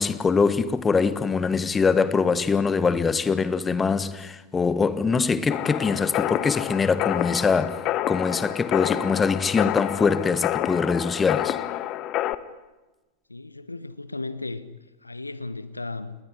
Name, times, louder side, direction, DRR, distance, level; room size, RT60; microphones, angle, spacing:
voice 1, 0.0-7.8 8.1-11.6, left 5 dB, 15° left, 1.4 m, -23 dB
sound 1, 5.5-12.3, left 14 dB, 35° left, 1.2 m, -28 dB
voice 2, 13.3-14.6 15.0-16.2, left 3 dB, 80° left, 1.2 m, -35 dB
29.5 x 20.0 x 9.9 m
figure-of-eight pair, 90°, 0 cm